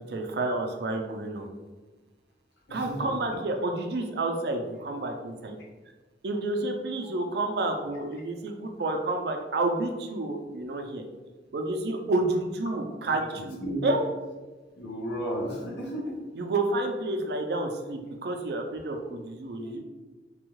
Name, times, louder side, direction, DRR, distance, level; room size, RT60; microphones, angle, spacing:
voice 1, 0.1-1.5 2.7-5.6 6.2-11.0 11.5-14.0 16.4-19.8, right 2 dB, 60° right, 3 dB, 0.4 m, -30 dB
voice 2, 2.7-3.1 13.1-13.2 13.6-13.9 14.8-16.3 19.6-19.8, equal, 80° left, -2 dB, 0.9 m, -33 dB
3.3 x 2.3 x 3.1 m, 1.3 s
head